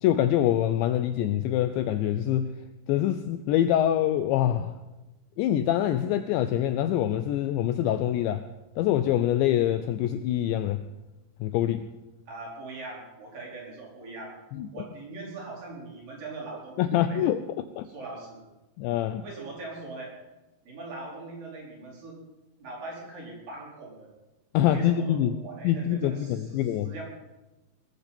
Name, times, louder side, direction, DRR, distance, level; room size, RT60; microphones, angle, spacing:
voice 1, 0.0-2.5 2.9-4.7 5.4-8.5 8.8-10.8 11.4-11.9 14.5-14.7 16.8-17.9 18.8-19.3 24.5-25.4 25.6-26.9, left 11 dB, 90° left, 10 dB, 2.5 m, -25 dB
voice 2, 12.3-14.4 14.7-17.2 17.8-18.4 19.2-20.2 20.6-22.2 22.6-24.1 24.6-25.2 25.4-26.5 26.8-27.0, right 3 dB, 45° right, -3 dB, 6.0 m, -41 dB
21.0 x 15.0 x 4.3 m, 1.1 s
omnidirectional pair, 6.0 m